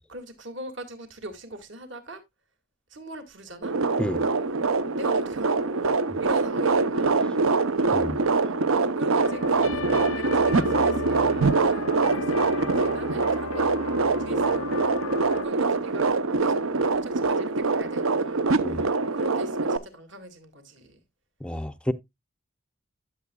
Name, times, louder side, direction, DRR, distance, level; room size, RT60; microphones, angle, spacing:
voice 1, 0.1-2.2 2.9-3.7 4.8-7.3 7.5-7.8 8.4-16.6 16.9-21.0, equal, 60° right, 2.1 m, -43 dB
sound 1, 3.6-19.8, right 3 dB, 80° right, 0.8 m, -24 dB
voice 2, 7.9-8.2 18.6-18.8 21.4-21.9, equal, 5° left, 0.4 m, -29 dB
sound 2, 9.2-15.5, left 6 dB, 80° left, 0.6 m, -36 dB
12.0 x 7.4 x 2.3 m
head